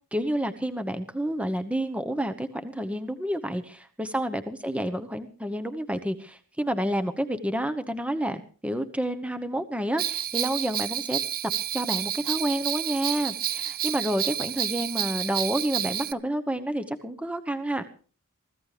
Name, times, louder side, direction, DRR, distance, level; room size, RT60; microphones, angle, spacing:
voice 1, 0.1-11.2 11.7-17.8, right 1 dB, 5° right, 9 dB, 1.0 m, -29 dB
Bell, 10.0-16.1, right 10 dB, 45° right, 0.8 m, -30 dB
24.0 x 15.0 x 3.3 m, 0.40 s
head